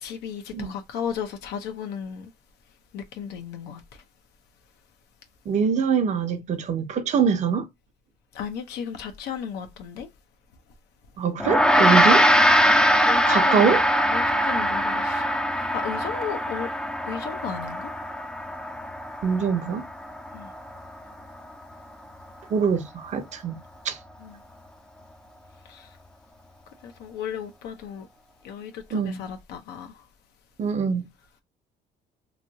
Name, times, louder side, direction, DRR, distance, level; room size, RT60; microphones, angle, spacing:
voice 1, 0.0-2.3 2.9-4.0 8.3-10.1 11.8-12.1 12.7-13.8 14.1-15.3 15.5-16.7 17.0-17.9 20.3-20.5 24.2-24.4 25.7-25.9 26.8-28.1 28.4-30.0, left 8 dB, 80° left, 0.7 m, -35 dB
voice 2, 5.5-7.7 11.2-12.2 13.3-13.8 19.2-19.8 22.5-23.6 23.8-24.0 28.9-29.2 30.6-31.1, right 6 dB, 45° right, 0.7 m, -23 dB
Gong, 11.4-20.9, equal, 5° left, 0.4 m, -22 dB
3.1 x 2.6 x 2.7 m
cardioid pair, 110°, 17 cm